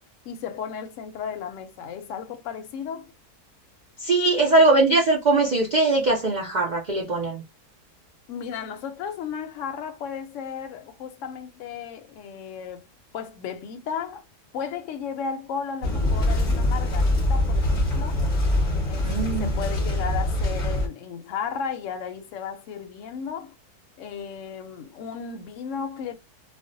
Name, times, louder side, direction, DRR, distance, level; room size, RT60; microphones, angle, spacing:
voice 1, 0.2-3.1 8.3-12.9 13.1-14.2 14.5-18.2 18.9-23.6 24.0-26.1, left 7 dB, 65° left, 0.8 m, -34 dB
voice 2, 4.0-7.4 19.0-19.6, right 2 dB, 75° right, 0.4 m, -21 dB
sound 1, 15.8-20.9, left 1 dB, 35° left, 0.6 m, -23 dB
2.5 x 2.1 x 2.5 m
omnidirectional pair, 1.6 m